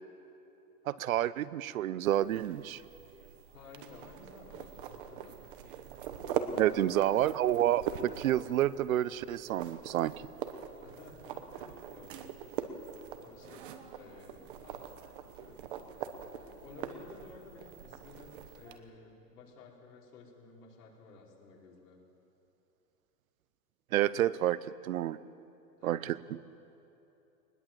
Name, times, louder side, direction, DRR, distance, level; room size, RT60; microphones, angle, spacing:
voice 1, 0.9-2.8 6.6-10.1 23.9-25.2 25.8-26.4, right 12 dB, 60° right, 18 dB, 0.7 m, -29 dB
sound 1, 2.0-18.8, right 8 dB, 35° right, 1.0 m, -42 dB
voice 2, 3.5-5.4 6.2-6.9 10.8-12.4 12.7-15.0 15.3-15.6 16.4-22.0 25.8-26.0, left 4 dB, 80° left, -3 dB, 5.4 m, -54 dB
21.0 x 20.5 x 7.6 m, 2.9 s
supercardioid pair, 180°, 46 cm